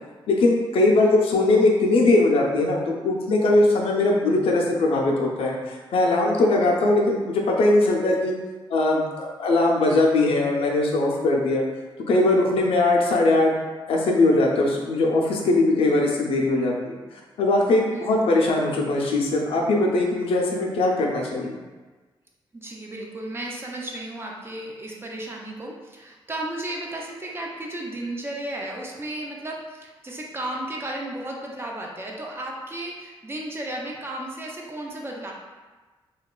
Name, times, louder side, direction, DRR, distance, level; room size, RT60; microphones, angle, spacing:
voice 1, 0.3-8.4 8.7-11.6 12.1-13.5 13.9-17.0 17.4-21.5, left 2 dB, 80° left, -1 dB, 0.4 m, -20 dB
voice 2, 17.9-18.3 22.5-35.3, right 1 dB, 25° right, -1 dB, 0.4 m, -34 dB
2.8 x 2.2 x 2.3 m, 1.3 s
cardioid pair, 105°, 9 cm